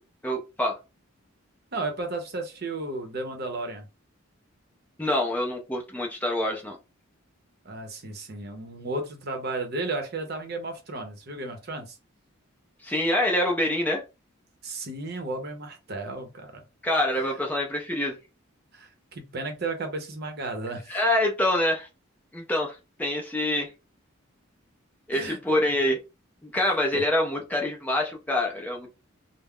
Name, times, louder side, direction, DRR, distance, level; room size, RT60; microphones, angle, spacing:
voice 1, 0.2-0.8 5.0-6.8 12.8-14.0 16.8-18.2 20.9-21.9 22.3-23.7 25.1-26.0 26.4-28.9, left 1 dB, 10° left, 0.4 m, -26 dB
voice 2, 1.7-3.8 7.6-11.9 14.6-16.6 18.7-20.9 25.1-25.4 26.9-27.0, right 2 dB, 50° right, 0.7 m, -33 dB
2.3 x 2.0 x 3.5 m
head